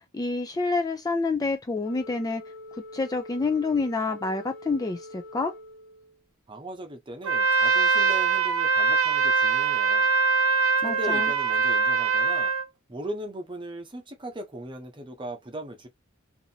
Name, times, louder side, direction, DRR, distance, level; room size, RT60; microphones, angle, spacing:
voice 1, 0.0-2.4 2.9-5.5 10.8-11.3, left 3 dB, 20° left, 0.3 m, -28 dB
Wind instrument woodwind instrument, 1.8-6.2, left 2 dB, 45° left, 1.1 m, -44 dB
voice 2, 6.5-10.1 10.8-12.5 12.9-15.9, right 1 dB, 25° right, 0.8 m, -38 dB
Trumpet, 7.2-12.7, right 4 dB, 90° right, 0.8 m, -23 dB
2.9 x 2.6 x 2.7 m
head